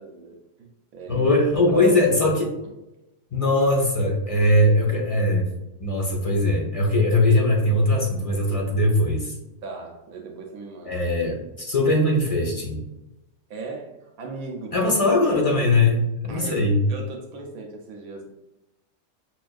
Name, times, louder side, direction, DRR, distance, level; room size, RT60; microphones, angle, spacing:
voice 1, 0.0-1.3 1.7-2.1 2.6-2.7 9.6-11.0 13.5-15.0 15.2-15.5 16.3-18.3, right 4 dB, 75° right, 2 dB, 1.0 m, -37 dB
voice 2, 1.1-2.5 3.3-5.5 5.8-9.3 10.9-12.8 14.7-16.8, left 1 dB, 30° left, -1 dB, 0.7 m, -20 dB
6.2 x 2.5 x 2.3 m, 0.95 s
omnidirectional pair, 1.5 m